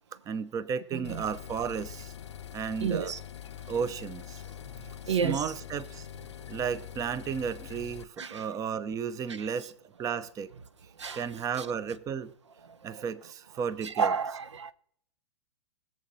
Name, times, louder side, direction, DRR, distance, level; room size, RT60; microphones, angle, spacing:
voice 1, 0.3-2.1 2.5-3.1 3.7-4.4 5.1-6.1 6.5-9.7 10.0-10.5 11.1-12.3 12.8-14.1, right 6 dB, 25° right, 0.7 m, -33 dB
voice 2, 0.9-1.2 2.8-3.2 5.1-5.5 8.2-8.4 11.0-11.2 11.6-11.7 13.8-14.7, right 6 dB, 85° right, 0.7 m, -30 dB
sound 1, 1.0-8.0, left 10 dB, 80° left, 0.5 m, -44 dB
19.5 x 7.4 x 4.2 m
hypercardioid pair, 110°, 15 cm